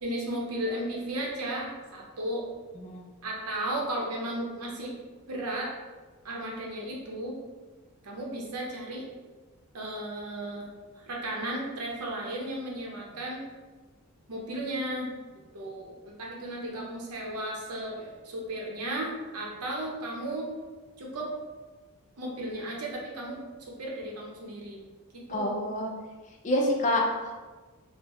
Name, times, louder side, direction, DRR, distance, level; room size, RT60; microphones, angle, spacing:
voice 1, 0.0-2.5 3.2-4.9 5.3-5.7 6.2-7.4 8.0-9.1 9.7-10.7 10.9-13.4 14.3-15.1 15.5-20.5 21.0-21.3 22.2-24.8 25.1-25.7, right 1 dB, 80° right, -1 dB, 0.7 m, -35 dB
voice 2, 2.8-3.1 25.3-25.9 26.4-27.3, left 1 dB, 35° left, 0 dB, 0.4 m, -27 dB
3.7 x 2.1 x 2.9 m, 1.3 s
head